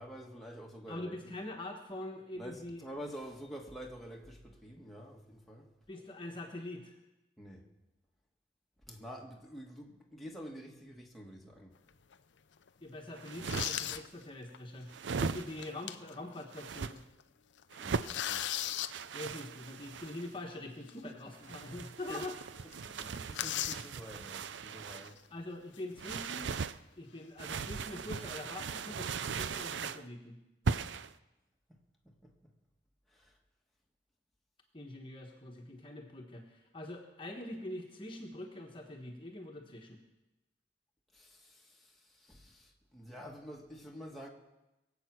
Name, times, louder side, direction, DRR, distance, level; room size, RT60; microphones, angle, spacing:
voice 1, 0.0-1.2 2.3-5.7 7.4-7.7 8.8-11.8 17.8-18.5 22.1-22.3 22.6-25.2 31.7-31.8 32.0-32.5 33.1-33.4 41.1-44.3, equal, ahead, -2 dB, 1.7 m, -48 dB
voice 2, 0.9-2.8 5.9-6.9 12.8-14.9 15.2-17.0 19.1-22.3 25.3-26.5 27.0-30.4 34.7-40.0, left 1 dB, 30° left, 2 dB, 1.3 m, -44 dB
sound 1, 11.9-12.1 12.7-12.8 13.3-14.1 14.5-14.6 15.4-16.2 16.6-16.7 17.0-17.2 17.6-18.9 20.9-21.0 21.5-21.6 21.9-22.0 22.2-22.4 22.7-23.9 24.9-25.2 25.7-26.4, left 11 dB, 80° left, 0.6 m, -37 dB
sound 2, 13.1-14.0 14.9-15.8 16.5-16.9 17.7-18.2 18.9-20.3 21.3-25.1 26.0-26.8 27.4-30.0 30.7-31.1, right 5 dB, 85° right, 0.5 m, -38 dB
22.0 x 8.3 x 6.1 m, 0.99 s
head